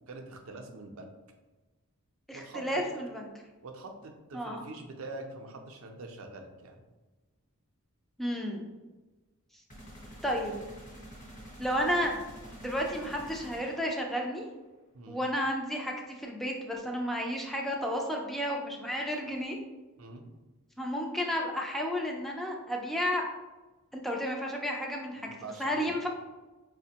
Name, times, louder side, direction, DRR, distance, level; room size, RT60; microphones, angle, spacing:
voice 1, 0.1-1.1 2.3-2.8 3.6-6.8 14.9-15.2 20.0-20.2 25.2-25.9, right 2 dB, 65° right, 4 dB, 0.5 m, -44 dB
voice 2, 2.3-3.3 4.3-4.6 8.2-8.7 10.2-10.6 11.6-12.1 12.5-14.4 15.1-19.6 20.8-23.2 23.9-25.3 25.6-26.1, equal, ahead, -1 dB, 0.4 m, -32 dB
sound 1, 9.7-14.4, equal, 35° left, 0.9 m, -48 dB
4.9 x 2.1 x 2.8 m, 1.2 s
head